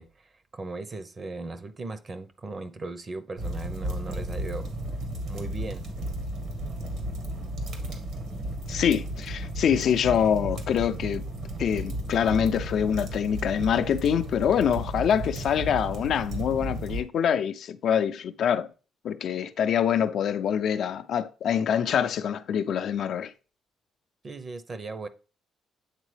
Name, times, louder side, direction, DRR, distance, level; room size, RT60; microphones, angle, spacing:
voice 1, 0.0-4.7 5.3-5.8 24.2-25.1, right 3 dB, 35° right, 0.7 m, -37 dB
sound 1, 3.4-17.0, right 1 dB, 75° right, 1.5 m, -34 dB
voice 2, 8.7-11.2 11.6-18.7 19.0-23.3, left 8 dB, 70° left, 0.4 m, -25 dB
8.1 x 3.7 x 3.3 m
cardioid pair, 90°, 0 cm